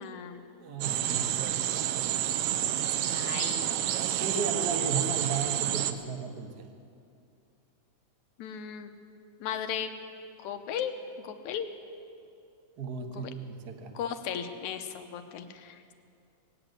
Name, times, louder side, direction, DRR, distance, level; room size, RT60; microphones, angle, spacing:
voice 1, 0.0-0.4 3.0-3.7 8.4-8.9 9.4-9.9 10.4-10.9 11.2-11.7 13.1-13.3 13.9-15.9, left 8 dB, 80° left, 8 dB, 2.2 m, -36 dB
voice 2, 0.6-1.6 4.2-6.7 12.8-14.0, right 5 dB, 60° right, 5 dB, 1.0 m, -35 dB
sound 1, 0.8-5.9, right 11 dB, 75° right, 1.8 m, -29 dB
19.0 x 8.0 x 9.2 m, 2.5 s
omnidirectional pair, 3.4 m